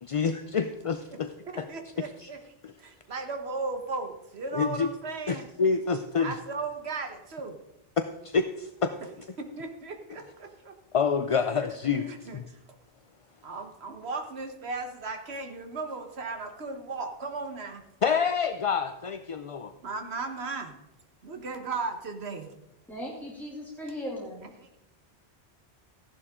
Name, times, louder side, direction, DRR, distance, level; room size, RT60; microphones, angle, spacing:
voice 1, 0.0-1.3 1.6-1.7 2.2-2.3 4.5-4.9 5.3-6.4 8.0-8.9 10.9-12.4 18.0-19.7, left 5 dB, 45° left, 0.5 m, -27 dB
voice 2, 1.5-2.4 2.8-5.5 6.2-7.6 9.4-10.7 11.3-11.4 12.0-12.6 13.4-17.8 19.8-20.7 21.2-22.5, right 3 dB, 85° right, 1.6 m, -36 dB
voice 3, 22.9-24.4, equal, ahead, 2.6 m, -37 dB
14.5 x 11.0 x 3.7 m
omnidirectional pair, 1.0 m